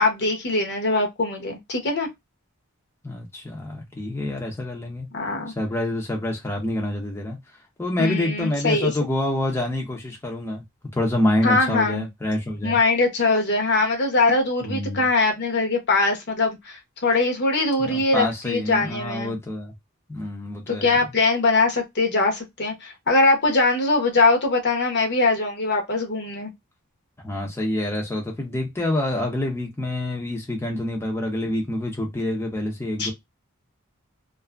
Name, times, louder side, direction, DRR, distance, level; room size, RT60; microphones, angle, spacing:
voice 1, 0.0-2.1 5.1-5.5 8.0-8.9 11.4-12.1 12.6-19.4 20.7-26.5 33.0-33.1, left 3 dB, 55° left, 0.9 m, -22 dB
voice 2, 3.0-5.1 5.6-7.4 7.8-10.6 10.9-12.8 14.6-15.0 17.8-19.7 20.1-21.0 27.2-33.1, left 1 dB, 10° left, 0.6 m, -27 dB
2.6 x 2.4 x 2.3 m
head